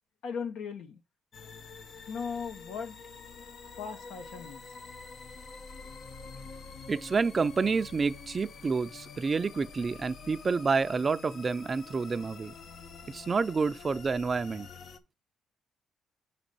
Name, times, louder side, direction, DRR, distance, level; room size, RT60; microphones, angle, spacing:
voice 1, 0.2-1.0 2.0-3.0 3.3-4.7, left 6 dB, 80° left, 1.4 m, -38 dB
sound 1, 1.3-15.0, left 5 dB, 60° left, 0.9 m, -47 dB
voice 2, 6.9-12.5 13.1-14.7, right 4 dB, 35° right, 0.5 m, -29 dB
5.3 x 5.1 x 5.4 m
cardioid pair, 90°, 0 cm